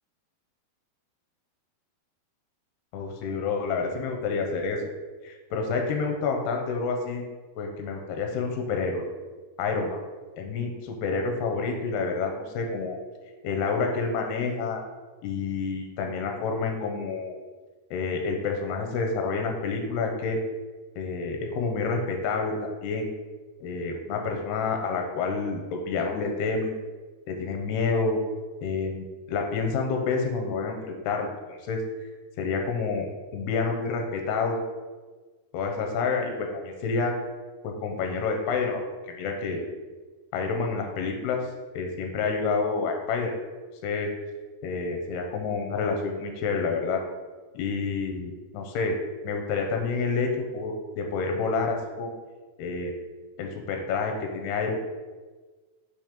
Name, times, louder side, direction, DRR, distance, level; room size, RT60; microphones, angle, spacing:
voice 1, 2.9-4.8 5.2-7.2 7.6-9.1 9.6-10.0 10.4-13.0 13.4-14.8 15.2-17.4 17.9-20.4 21.0-23.1 23.6-26.8 27.3-28.2 28.6-31.8 32.4-33.1 33.3-34.6 35.5-37.1 37.6-38.8 39.1-39.7 40.3-41.5 41.7-43.3 43.8-44.1 44.6-47.0 47.5-49.0 49.2-52.1 52.6-52.9 53.4-54.8, left 4 dB, 85° left, 3 dB, 2.7 m, -28 dB
7.1 x 3.1 x 5.0 m, 1.3 s
omnidirectional pair, 4.5 m